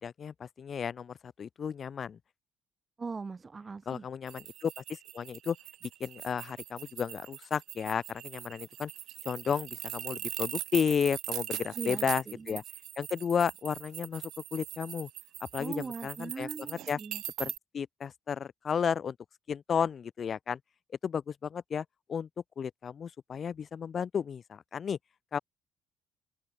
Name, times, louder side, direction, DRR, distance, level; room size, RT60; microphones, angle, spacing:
voice 1, 0.0-2.2 3.9-5.6 6.0-8.9 9.2-12.6 13.0-15.1 15.5-17.0 17.4-19.2 19.5-20.6 21.0-22.3 22.6-25.0 25.3-25.4, left 7 dB, 50° left, 3.6 m, -33 dB
voice 2, 3.0-4.1 11.8-12.6 15.6-17.5, right 4 dB, 30° right, 5.7 m, -40 dB
sound 1, 4.3-17.6, right 13 dB, 70° right, 2.1 m, -41 dB
open air
hypercardioid pair, 60°, 0 cm